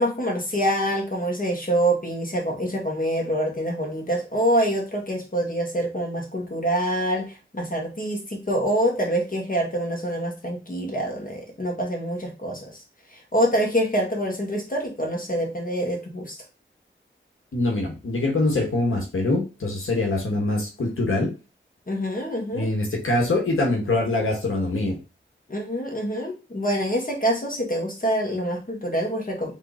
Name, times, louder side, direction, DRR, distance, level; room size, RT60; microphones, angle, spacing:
voice 1, 0.0-12.7 13.1-16.4 21.9-22.7 25.5-29.6, right 1 dB, 40° left, 0 dB, 1.9 m, -26 dB
voice 2, 17.5-21.3 22.5-25.0, left 2 dB, 85° left, -1 dB, 1.3 m, -24 dB
3.7 x 3.2 x 4.0 m, 0.30 s
wide cardioid pair, 60°, 21 cm